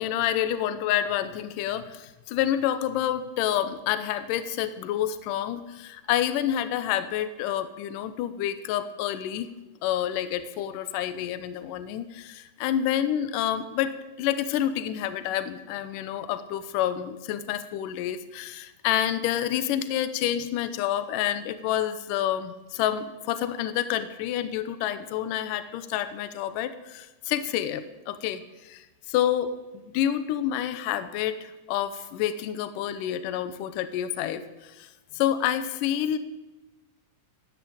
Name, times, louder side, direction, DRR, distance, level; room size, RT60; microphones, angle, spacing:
voice 1, 0.0-9.5 9.8-36.2, left 11 dB, 80° left, 11 dB, 2.3 m, -28 dB
15.5 x 9.8 x 8.8 m, 1.1 s
omnidirectional pair, 4.0 m